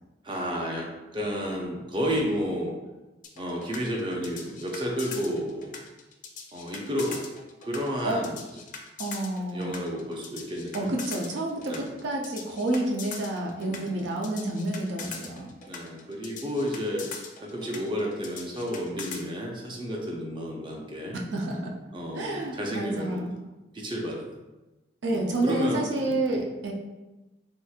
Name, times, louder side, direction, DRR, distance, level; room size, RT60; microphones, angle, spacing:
voice 1, 0.2-2.8 3.4-5.8 6.5-7.3 7.6-8.4 9.5-10.9 11.6-11.9 13.6-14.0 15.7-17.1 17.4-21.2 21.9-23.2 23.7-24.3 25.1-25.8 26.1-26.2, equal, 30° right, -1 dB, 0.5 m, -31 dB
sound 1, 3.2-19.2, left 5 dB, 45° left, 0.4 m, -41 dB
voice 2, 9.0-9.7 10.7-15.5 21.3-21.7 22.1-23.3 25.0-26.7, right 1 dB, 90° right, 0 dB, 0.5 m, -29 dB
3.3 x 2.9 x 2.3 m, 1.1 s
head